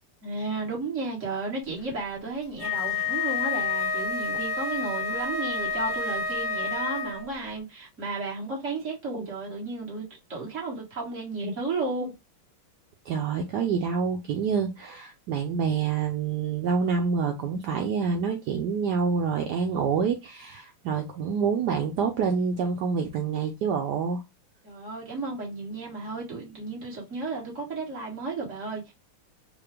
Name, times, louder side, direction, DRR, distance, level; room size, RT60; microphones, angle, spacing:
voice 1, 0.2-12.1 24.6-28.9, right 3 dB, 40° right, 1.5 m, -33 dB
Wind instrument woodwind instrument, 2.6-7.3, left 4 dB, 50° left, 1.3 m, -29 dB
voice 2, 13.1-24.2, right 6 dB, 80° right, 0.9 m, -27 dB
4.8 x 2.2 x 3.3 m
omnidirectional pair, 2.4 m